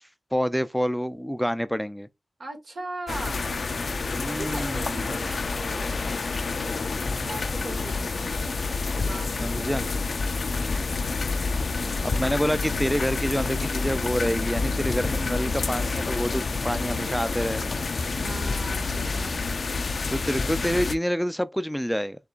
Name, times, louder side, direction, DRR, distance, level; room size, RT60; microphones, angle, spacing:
voice 1, 0.3-2.1 4.1-5.2 9.4-9.8 12.0-17.7 20.1-22.2, equal, ahead, 0.4 m, -27 dB
voice 2, 2.4-3.5 4.2-6.1 7.2-8.4 8.9-10.1 11.6-12.4 18.1-19.4, right 2 dB, 80° right, 1.6 m, -40 dB
sound 1, 3.1-20.9, left 4 dB, 75° left, 0.4 m, -28 dB
6.7 x 2.4 x 2.4 m
cardioid pair, 55°, 0 cm